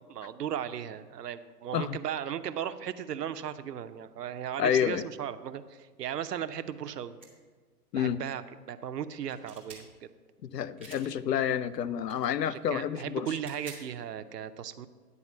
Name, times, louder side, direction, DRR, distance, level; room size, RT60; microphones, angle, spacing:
voice 1, 0.1-7.2 8.0-8.4 8.7-10.1 12.4-14.9, right 9 dB, 75° right, 11 dB, 0.7 m, -36 dB
voice 2, 4.6-5.0 7.9-8.2 10.4-13.3, left 9 dB, 85° left, 15 dB, 0.6 m, -29 dB
sound 1, 7.2-7.3 9.1-9.8 10.8-11.1 12.0-12.3 13.3-13.9, right 4 dB, 10° right, 0.4 m, -48 dB
9.8 x 4.2 x 7.2 m, 1.4 s
hypercardioid pair, 145°, 48 cm